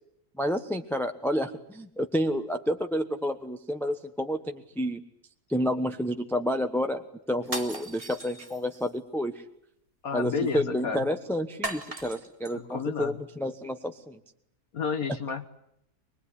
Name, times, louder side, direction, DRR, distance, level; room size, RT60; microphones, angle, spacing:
voice 1, 0.4-5.0 5.5-7.0 7.3-9.3 10.1-14.2, equal, ahead, 6 dB, 1.0 m, -29 dB
sound 1, 7.4-8.9 11.6-12.5, right 2 dB, 20° right, 2.3 m, -37 dB
voice 2, 10.0-11.1 12.5-13.2 14.7-15.5, left 5 dB, 60° left, 8 dB, 1.7 m, -31 dB
24.5 x 20.5 x 9.9 m, 0.75 s
omnidirectional pair, 1.7 m